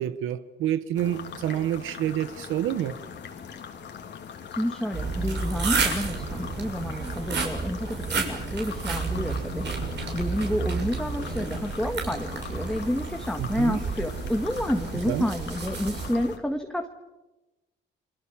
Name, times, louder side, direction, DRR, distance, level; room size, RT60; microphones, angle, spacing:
voice 1, 0.0-3.0 13.4-13.8 15.1-15.3, right 11 dB, 85° right, 1.1 m, -28 dB
sound 1, 0.9-16.4, left 7 dB, 65° left, 3.2 m, -41 dB
voice 2, 4.5-16.9, equal, 5° left, 1.9 m, -30 dB
sound 2, 4.9-16.1, right 4 dB, 60° right, 6.9 m, -31 dB
29.0 x 23.5 x 7.3 m
cardioid pair, 90°, 20 cm